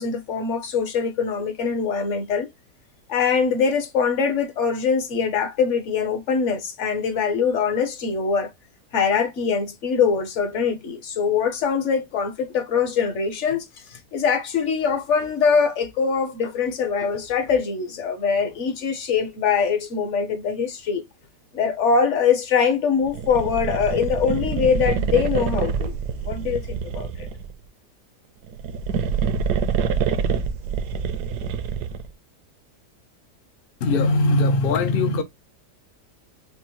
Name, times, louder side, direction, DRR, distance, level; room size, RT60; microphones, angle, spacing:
voice 1, 0.0-2.5 3.1-8.5 8.9-21.0 21.5-26.0 26.2-27.3, left 6 dB, 55° left, 1.0 m, -23 dB
sound 1, 23.1-27.5 28.4-32.1, right 6 dB, 75° right, 1.2 m, -26 dB
voice 2, 33.8-35.2, left 2 dB, 75° left, 0.5 m, -20 dB
5.8 x 2.0 x 2.9 m
omnidirectional pair, 1.8 m